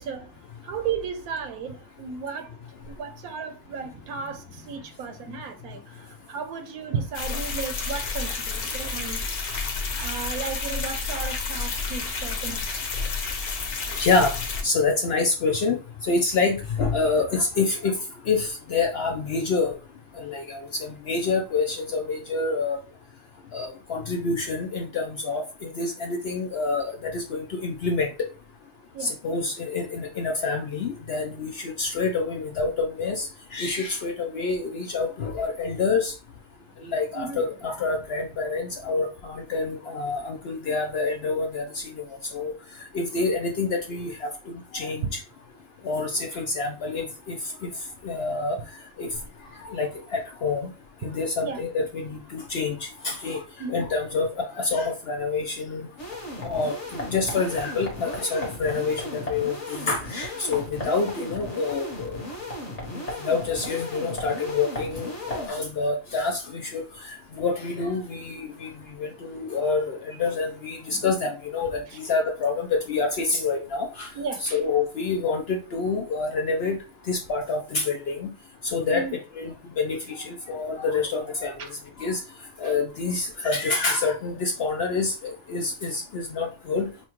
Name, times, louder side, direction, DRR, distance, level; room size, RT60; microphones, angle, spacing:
voice 1, 0.0-2.6 2.9-9.7 10.0-12.9 28.9-29.1 36.8-37.4 51.4-51.6 53.6-53.9 70.9-71.1 74.1-74.6 78.9-79.1 81.6-81.7 82.6-82.7, right 6 dB, 80° right, 1.2 m, -35 dB
sound 1, 7.1-14.6, left 4 dB, 85° left, 1.4 m, -30 dB
voice 2, 13.9-14.4 14.6-18.0 18.3-19.8 20.1-22.8 23.5-28.1 29.0-36.1 36.8-42.0 42.3-42.5 42.9-44.3 44.7-45.2 45.8-47.7 48.0-48.6 49.0-49.1 49.6-50.7 51.0-53.4 53.7-55.9 56.4-62.2 62.9-68.7 69.0-74.1 74.4-76.8 77.1-78.3 78.6-81.7 82.0-82.2 82.6-86.9, left 4 dB, 60° left, 0.7 m, -27 dB
sound 2, 56.0-65.5, left 1 dB, 30° left, 1.1 m, -35 dB
5.6 x 2.3 x 3.0 m
omnidirectional pair, 1.5 m